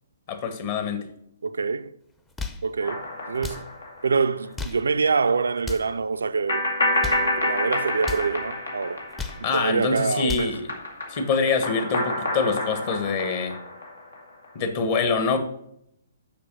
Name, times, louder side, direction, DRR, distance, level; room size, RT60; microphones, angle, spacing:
voice 1, 0.3-1.0 9.4-10.7 11.1-13.6 14.5-15.4, left 5 dB, 45° left, 1.4 m, -25 dB
voice 2, 1.4-1.9 2.6-3.7 4.0-6.7 7.0-9.0 9.5-10.5, right 4 dB, 75° right, 0.4 m, -25 dB
sound 1, 2.2-2.7 3.3-3.7 4.4-4.9 5.6-6.0 6.8-7.3 8.0-8.3 9.0-9.5 10.0-10.6, left 4 dB, 10° left, 0.6 m, -35 dB
sound 2, 2.8-4.5 4.8-4.9 6.5-10.0 10.2-14.5, left 1 dB, 85° left, 2.1 m, -28 dB
6.9 x 6.0 x 6.2 m
figure-of-eight pair, 125°, 0 cm